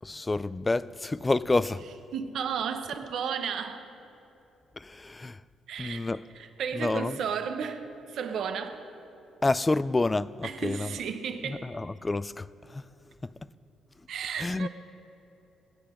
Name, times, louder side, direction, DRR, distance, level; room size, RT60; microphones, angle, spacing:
voice 1, 0.0-1.8 4.8-5.4 5.8-6.2 6.7-7.2 9.4-11.0 11.4-12.8 13.2-13.3 14.4-14.7, left 2 dB, 20° left, 0.3 m, -29 dB
voice 2, 2.1-3.9 5.7-6.0 6.3-8.8 10.4-11.6 14.1-14.7, right 7 dB, 70° right, 1.0 m, -33 dB
19.5 x 8.5 x 5.2 m
cardioid pair, 90°, 0 cm